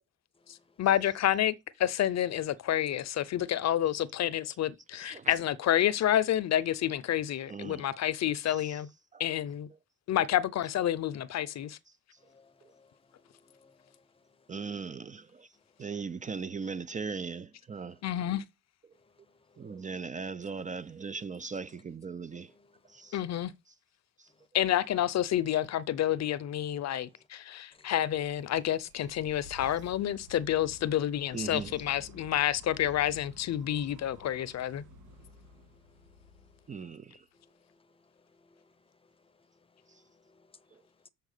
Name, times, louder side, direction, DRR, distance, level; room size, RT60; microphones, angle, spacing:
voice 1, 0.5-1.5 1.8-8.9 9.2-9.7 10.1-11.8 18.0-18.4 23.1-23.5 24.5-34.8, left 11 dB, 60° left, 0.7 m, -29 dB
voice 2, 4.9-5.3 7.5-7.9 8.5-8.8 9.1-9.2 14.5-15.5 15.8-18.0 19.6-22.5 22.9-23.2 24.2-24.3 31.3-31.8 36.7-37.2 39.9-40.0 40.7-40.8, right 5 dB, 25° right, 0.5 m, -39 dB
voice 3, 12.3-12.9 13.2-13.9 19.6-19.7 22.6-22.7 27.8-27.9 35.5-36.5 37.3-38.0 38.3-38.7 40.1-40.5, left 3 dB, 20° left, 0.7 m, -64 dB
sound 1, 27.9-37.1, left 1 dB, 80° right, 1.7 m, -53 dB
7.2 x 4.6 x 6.6 m
cardioid pair, 90°, 30 cm